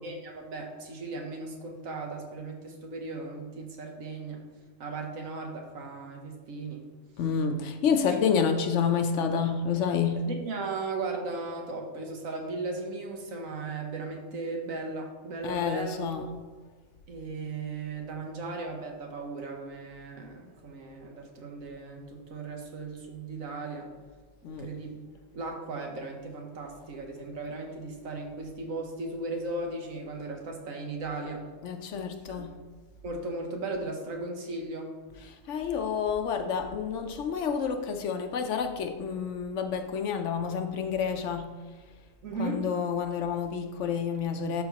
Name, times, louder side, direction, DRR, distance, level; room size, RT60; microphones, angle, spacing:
voice 1, 0.0-4.4 4.8-6.9 8.1-8.3 10.2-16.0 17.1-23.9 24.4-25.0 25.3-31.5 32.3-32.4 33.0-34.9 42.2-42.7, right 3 dB, 80° right, 2 dB, 1.5 m, -37 dB
voice 2, 7.2-10.2 15.4-16.3 24.4-24.7 31.6-32.6 35.2-41.5 42.4-44.6, left 6 dB, 70° left, 6 dB, 0.9 m, -29 dB
12.0 x 4.0 x 2.9 m, 1.4 s
omnidirectional pair, 1.4 m